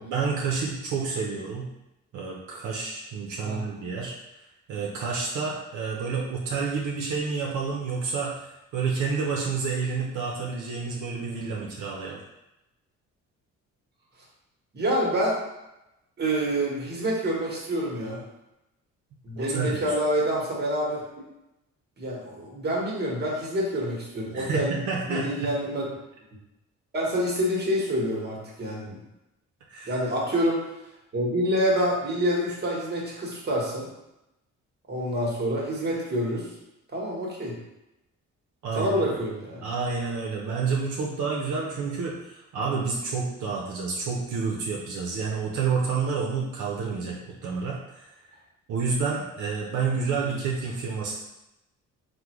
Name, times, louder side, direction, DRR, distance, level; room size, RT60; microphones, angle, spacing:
voice 1, 0.0-1.7 2.1-4.1 4.7-12.2 19.4-19.9 24.3-25.5 29.7-30.0 38.6-39.1 39.6-48.1 48.7-51.1, right 5 dB, 80° right, -2 dB, 0.6 m, -29 dB
voice 2, 14.7-15.4 16.2-18.2 19.2-21.0 22.0-24.7 25.1-25.8 26.9-29.0 29.9-30.6 31.1-33.9 34.9-36.5 36.9-37.6 38.7-39.6 50.2-50.4, equal, 35° right, -3 dB, 1.1 m, -27 dB
3.5 x 2.1 x 3.0 m, 0.92 s
cardioid pair, 90°, 30 cm